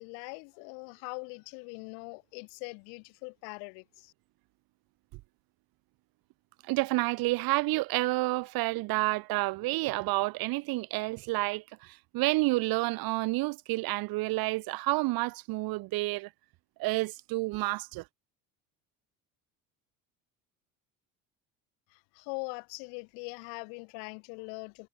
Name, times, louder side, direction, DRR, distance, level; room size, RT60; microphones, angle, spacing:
voice 1, 0.0-4.1 21.9-24.9, left 40 dB or more, 85° left, 3.1 m, -42 dB
voice 2, 6.6-16.3 16.8-18.0, right 21 dB, 70° right, 1.1 m, -29 dB
cardioid pair, 105°, 37 cm